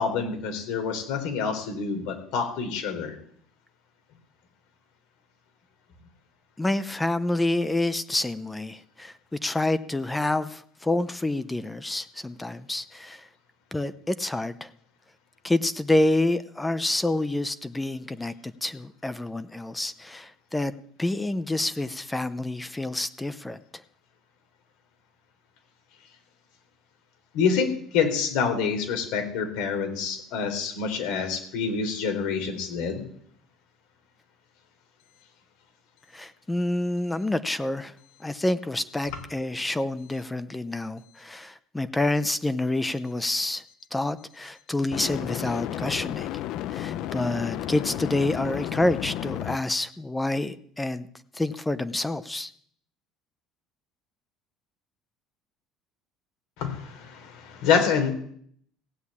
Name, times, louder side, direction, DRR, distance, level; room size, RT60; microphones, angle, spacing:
voice 1, 0.0-3.1 27.3-33.1 56.6-58.1, left 6 dB, 80° left, 6 dB, 3.9 m, -27 dB
voice 2, 6.6-9.1 9.4-13.3 13.7-14.7 15.4-20.7 21.0-23.6 36.1-37.9 38.2-43.6 43.9-46.3 46.7-51.1 51.3-52.5, left 2 dB, 10° left, 13 dB, 0.7 m, -28 dB
sound 1, 40.0-40.2 44.9-49.6, left 12 dB, 65° left, 0.7 m, -32 dB
16.0 x 7.9 x 8.6 m, 0.63 s
cardioid pair, 120°, 0 cm